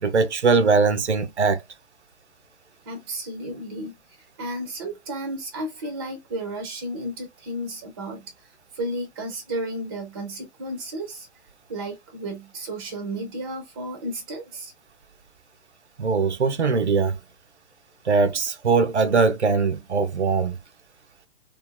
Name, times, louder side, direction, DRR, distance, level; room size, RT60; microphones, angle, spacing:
voice 1, 0.0-1.6 16.0-17.2 18.1-20.6, right 4 dB, 90° right, 0.5 m, -21 dB
voice 2, 2.9-8.5 8.7-11.3 11.7-14.7, right 1 dB, 25° right, 0.4 m, -33 dB
2.6 x 2.3 x 2.2 m
figure-of-eight pair, 120°, 33 cm